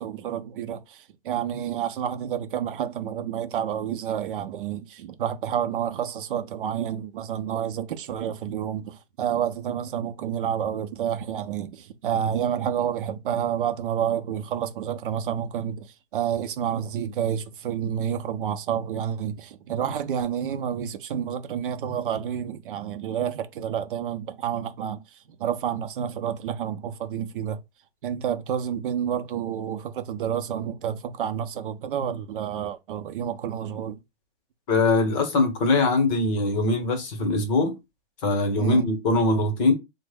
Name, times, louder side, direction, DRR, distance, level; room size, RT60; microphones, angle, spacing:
voice 1, 0.0-27.6 28.0-34.0 38.6-38.9, right 9 dB, 50° right, 0.6 m, -29 dB
voice 2, 34.7-37.7 38.2-39.7, left 2 dB, 30° left, 0.9 m, -22 dB
3.0 x 2.1 x 3.5 m
hypercardioid pair, 145°, 34 cm